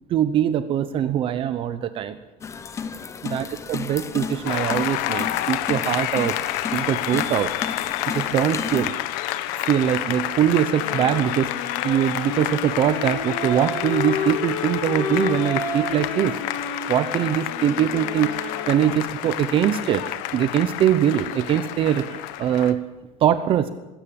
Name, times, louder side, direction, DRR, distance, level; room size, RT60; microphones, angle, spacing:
voice 1, 0.1-2.2 3.2-6.4 6.7-7.5 8.1-8.9 9.6-16.4 16.9-20.0 20.3-22.8 23.2-23.7, right 10 dB, 35° right, 12 dB, 0.9 m, -22 dB
sound 1, 2.4-8.9, left 5 dB, 20° left, 1.0 m, -33 dB
Applause, 4.5-22.7, left 14 dB, 70° left, 1.4 m, -29 dB
sound 2, 10.7-19.1, left 4 dB, 90° left, 7.6 m, -31 dB
21.5 x 16.5 x 8.7 m, 1.1 s
cardioid pair, 165°, 15 cm